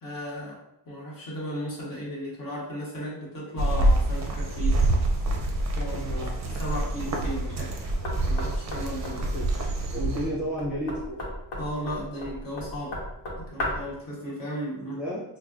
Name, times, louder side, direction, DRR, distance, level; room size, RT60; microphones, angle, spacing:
voice 1, 0.0-0.6 0.8-4.8 5.8-6.1 6.6-7.7 8.2-9.2 11.6-13.0 13.4-15.0, equal, 50° left, -4 dB, 1.2 m, -35 dB
sound 1, 3.6-10.3, right 1 dB, 40° right, 0.5 m, -26 dB
voice 2, 5.9-6.3 9.0-11.2 14.9-15.2, equal, 5° right, -9 dB, 0.7 m, -33 dB
Knock, 8.0-14.0, left 1 dB, 75° left, 1.0 m, -36 dB
4.9 x 2.1 x 2.4 m, 0.81 s
wide cardioid pair, 175°, 44 cm